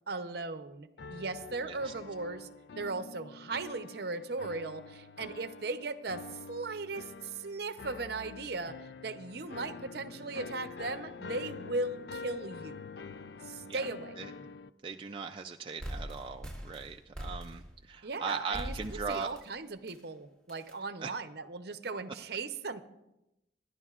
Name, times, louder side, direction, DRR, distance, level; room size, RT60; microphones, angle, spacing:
voice 1, 0.1-2.5 2.8-8.8 9.0-12.8 13.4-14.2 18.0-18.7 19.1-22.8, right 3 dB, 55° right, 10 dB, 0.7 m, -37 dB
sound 1, 1.0-14.7, left 4 dB, 60° left, 0.4 m, -46 dB
voice 2, 1.6-1.9 13.6-13.8 14.2-14.3 14.8-19.3 21.0-21.1, right 5 dB, 25° right, 3 dB, 0.4 m, -39 dB
sound 2, 15.8-17.9 18.5-19.5 19.9-20.0 20.5-20.7, equal, 5° left, 1.9 m, -42 dB
25.5 x 11.0 x 2.4 m, 0.91 s
head